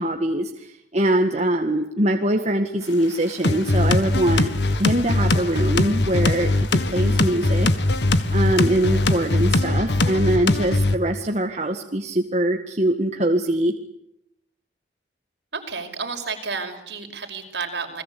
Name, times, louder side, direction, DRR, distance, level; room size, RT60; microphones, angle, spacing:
voice 1, 0.0-4.5 4.8-7.7 8.3-13.7, right 1 dB, 35° right, 4 dB, 1.9 m, -23 dB
sound 1, 2.8-9.6, left 4 dB, 85° left, 7.2 m, -44 dB
sound 2, 3.4-11.0, left 2 dB, 65° left, 1.7 m, -21 dB
voice 2, 15.5-18.0, right 4 dB, 65° right, 5 dB, 5.7 m, -31 dB
30.0 x 21.0 x 8.6 m, 0.78 s
head